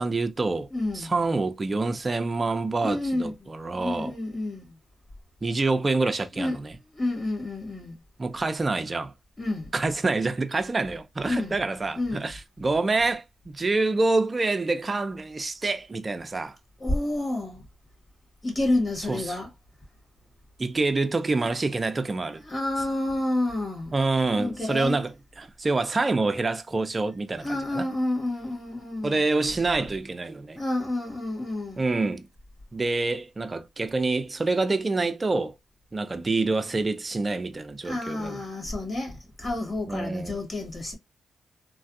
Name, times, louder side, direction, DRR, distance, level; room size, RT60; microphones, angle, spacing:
voice 1, 0.0-0.7 0.9-4.1 5.4-6.8 8.2-9.1 9.7-16.6 19.1-19.4 20.6-22.4 23.9-27.8 29.0-30.6 31.8-32.3 32.7-35.5 35.9-38.4 39.9-40.4, right 3 dB, 30° right, 0.5 m, -27 dB
voice 2, 0.7-1.1 2.8-4.7 6.4-6.6 6.9-7.9 9.4-9.7 11.2-11.6 12.0-12.3 16.8-17.6 18.4-19.5 22.4-24.0 24.4-25.0 27.4-29.2 30.6-31.9 37.8-40.9, left 2 dB, 35° left, 1.9 m, -29 dB
3.2 x 2.4 x 2.6 m
cardioid pair, 65°, 0 cm